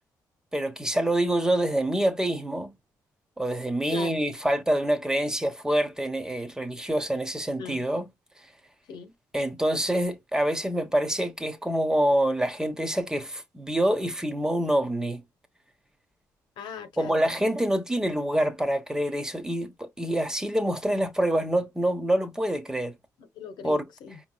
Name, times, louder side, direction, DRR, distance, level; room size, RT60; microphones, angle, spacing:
voice 1, 0.5-2.7 3.4-8.1 9.3-15.2 17.0-22.9 23.6-23.8, right 1 dB, 10° right, 1.0 m, -26 dB
voice 2, 3.9-4.2 7.6-7.8 8.9-9.1 16.6-17.2 23.2-24.2, left 6 dB, 80° left, 1.1 m, -40 dB
5.0 x 3.1 x 2.3 m
cardioid pair, 100°, 7 cm